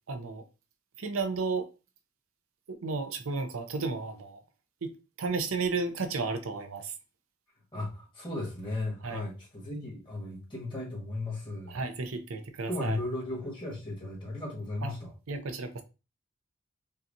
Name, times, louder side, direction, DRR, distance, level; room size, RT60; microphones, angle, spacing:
voice 1, 0.1-0.4 1.0-1.7 2.7-4.4 4.8-6.9 9.0-9.3 11.7-13.0 14.8-14.9 15.3-15.8, right 4 dB, 85° right, 0.6 m, -33 dB
voice 2, 7.7-11.8 12.7-15.1, left 2 dB, 25° left, 1.6 m, -36 dB
5.4 x 2.3 x 2.7 m
head